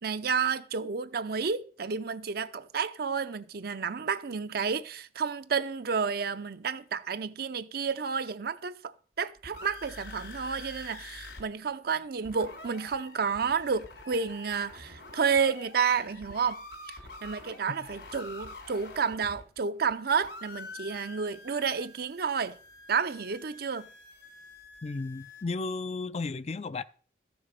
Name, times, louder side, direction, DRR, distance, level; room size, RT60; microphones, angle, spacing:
voice 1, 0.0-22.6 22.9-23.9, right 6 dB, 60° right, 0.6 m, -31 dB
sound 1, 9.2-11.4 11.7-11.8 12.0-19.9 20.2-25.4, left 3 dB, 75° left, 3.5 m, -47 dB
voice 2, 24.8-26.8, left 3 dB, 35° left, 0.4 m, -34 dB
13.5 x 6.9 x 5.2 m
head